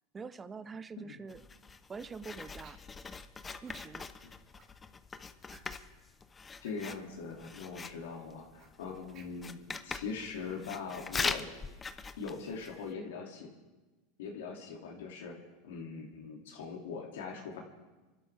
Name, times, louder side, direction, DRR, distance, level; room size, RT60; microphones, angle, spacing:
voice 1, 0.1-1.4 1.9-2.8 3.6-4.1, right 5 dB, 20° right, 15 dB, 0.7 m, -44 dB
Writing, 1.3-12.9, left 4 dB, 20° left, 0.8 m, -42 dB
sound 1, 2.6-3.0 3.6-3.8 4.5-4.9 5.5-5.9 6.5-6.8 8.6-9.6, right 5 dB, 45° right, 2.6 m, -59 dB
voice 2, 6.6-11.5 12.2-13.5 14.2-15.4 15.6-17.6, left 5 dB, 85° left, 0 dB, 2.5 m, -41 dB
29.0 x 12.5 x 3.4 m, 1.2 s
supercardioid pair, 115°, 0 cm